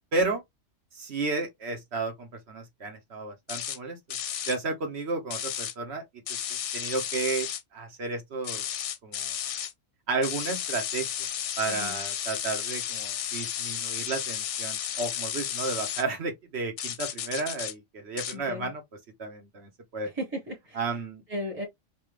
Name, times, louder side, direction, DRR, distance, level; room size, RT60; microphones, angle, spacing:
voice 1, 0.1-0.4 0.9-4.0 4.5-8.6 9.0-9.3 10.1-11.3 11.6-18.8 19.2-20.1 20.8-21.2, right 3 dB, 55° right, 1.1 m, -32 dB
sound 1, 3.5-3.8 4.1-4.6 5.3-5.7 6.3-7.6 8.4-9.7 10.2-16.0 16.8-17.7 18.2-18.3, left 10 dB, 70° left, 0.8 m, -33 dB
voice 2, 11.7-12.0 18.3-18.7 20.0-21.0 21.3-21.6, equal, 10° right, 1.2 m, -36 dB
3.3 x 2.4 x 3.1 m
omnidirectional pair, 1.4 m